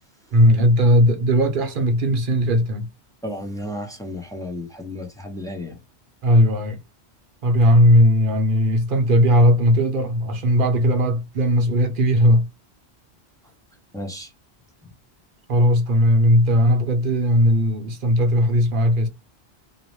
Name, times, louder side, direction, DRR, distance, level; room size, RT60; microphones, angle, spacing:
voice 1, 0.3-2.9 6.2-6.8 7.4-12.5 15.5-19.1, equal, 55° right, 0.8 m, -17 dB
voice 2, 3.2-5.8 13.9-14.3, left 1 dB, 5° left, 0.4 m, -33 dB
2.7 x 2.0 x 3.0 m
omnidirectional pair, 1.2 m